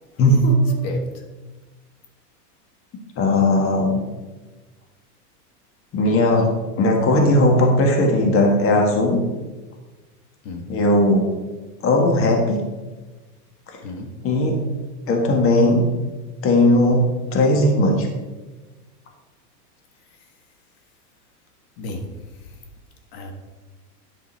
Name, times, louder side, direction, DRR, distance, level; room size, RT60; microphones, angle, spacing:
voice 1, 0.2-0.8 3.2-4.0 5.9-6.5 6.8-9.2 10.7-11.3 11.8-12.6 14.2-14.5 15.1-15.8 16.4-18.1, left 1 dB, 25° left, 2 dB, 1.6 m, -17 dB
voice 2, 0.8-1.2 10.4-10.7 13.8-14.2 21.8-22.1 23.1-23.3, left 2 dB, 45° left, 4 dB, 1.4 m, -33 dB
9.9 x 5.4 x 4.5 m, 1.2 s
hypercardioid pair, 130°, 48 cm